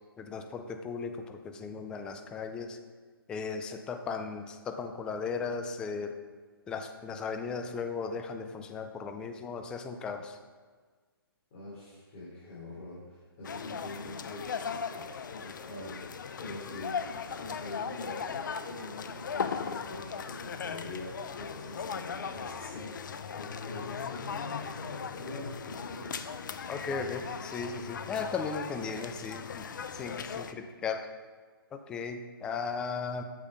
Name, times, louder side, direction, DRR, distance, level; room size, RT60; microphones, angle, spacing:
voice 1, 0.2-2.8 3.3-6.2 6.7-10.4 26.7-31.1 31.7-33.2, left 5 dB, 5° left, 6 dB, 0.4 m, -36 dB
voice 2, 11.5-14.5 14.9-16.0 16.4-26.1, left 2 dB, 35° left, -9 dB, 3.5 m, -44 dB
sound 1, 13.4-30.5, left 6 dB, 50° left, 0.7 m, -38 dB
8.6 x 8.5 x 5.1 m, 1.5 s
hypercardioid pair, 155°, 13 cm